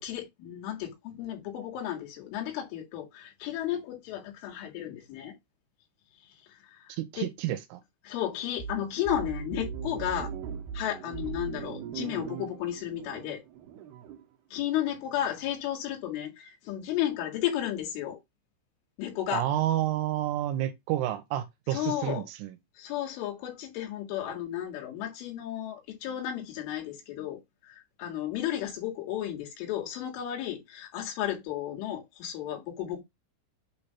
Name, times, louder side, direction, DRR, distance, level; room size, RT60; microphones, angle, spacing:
voice 1, 0.0-5.4 6.5-7.3 8.1-10.3 10.7-13.4 14.5-18.2 19.0-19.5 21.7-22.3 22.8-33.0, left 11 dB, 75° left, 4.5 m, -33 dB
voice 2, 6.9-7.8 19.3-22.6, right 13 dB, 85° right, 3.3 m, -30 dB
sound 1, 8.6-14.2, right 7 dB, 65° right, 2.8 m, -39 dB
8.5 x 3.4 x 5.8 m
omnidirectional pair, 5.7 m